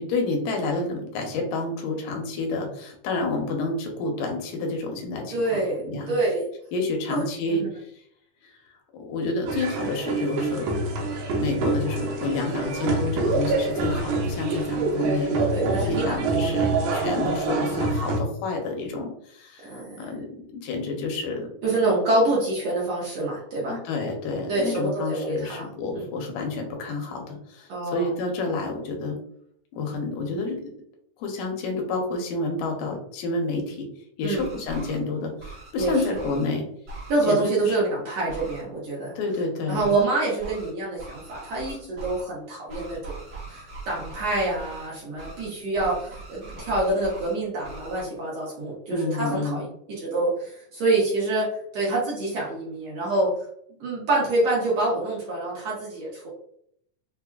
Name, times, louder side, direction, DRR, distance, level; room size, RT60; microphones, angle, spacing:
voice 1, 0.0-6.1 6.7-7.9 8.9-10.7 11.4-21.5 23.7-29.2 29.7-30.7 31.2-33.9 34.2-36.7 37.3-37.8 39.2-39.9 48.9-49.6, left 3 dB, 80° left, 2 dB, 2.3 m, -29 dB
voice 2, 5.3-6.4 7.1-7.2 7.5-7.7 15.5-16.2 19.6-19.9 21.6-23.8 24.5-25.7 25.9-26.0 27.7-28.1 34.2-34.5 35.8-36.2 37.1-39.1 39.7-43.2 43.5-49.7 50.0-51.5 51.7-53.4 53.8-56.3, right 2 dB, 70° right, -5 dB, 1.6 m, -26 dB
sound 1, 9.5-18.2, right 3 dB, 85° right, 2.5 m, -26 dB
sound 2, 34.2-35.0 35.4-36.5 36.9-37.2 38.3-38.6 39.7-40.0 40.4-40.7 41.0-42.2 42.7-44.9 45.2-45.5 45.8-47.3 47.6-48.0, right 3 dB, 50° right, 1.2 m, -40 dB
5.8 x 2.0 x 2.3 m, 0.68 s
omnidirectional pair, 3.9 m